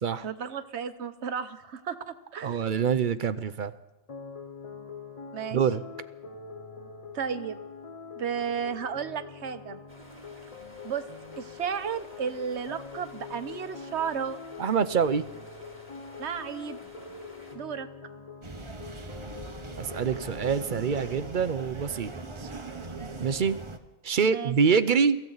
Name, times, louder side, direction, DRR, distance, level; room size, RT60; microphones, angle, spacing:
voice 1, 0.2-2.6 5.3-5.6 7.1-7.6 8.2-9.8 10.8-11.0 11.4-14.4 16.2-16.8 17.5-17.9 24.2-24.5, right 7 dB, 75° right, 10 dB, 1.2 m, -33 dB
voice 2, 2.4-3.7 5.5-5.8 14.6-15.2 19.8-22.1 22.4-22.5 23.2-23.6 24.0-25.2, right 6 dB, 50° right, 13 dB, 0.8 m, -25 dB
sound 1, 4.1-21.2, left 5 dB, 35° left, 0.8 m, -44 dB
sound 2, 9.9-17.6, equal, 10° left, 3.3 m, -52 dB
sound 3, 18.4-23.8, right 3 dB, 25° right, 1.1 m, -40 dB
23.5 x 15.0 x 4.0 m, 1.0 s
omnidirectional pair, 1.2 m